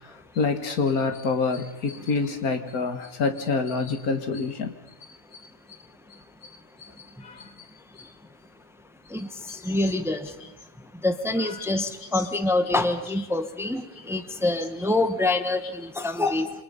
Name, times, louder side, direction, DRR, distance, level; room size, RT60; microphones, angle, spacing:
voice 1, 0.4-4.7 7.2-7.4 11.4-11.9 12.1-12.3 13.1-13.3 14.8-14.9, left 4 dB, 85° left, 6 dB, 2.2 m, -27 dB
voice 2, 9.1-10.4 11.0-16.5, left 2 dB, ahead, 9 dB, 1.1 m, -26 dB
28.0 x 25.0 x 5.4 m, 0.93 s
omnidirectional pair, 1.5 m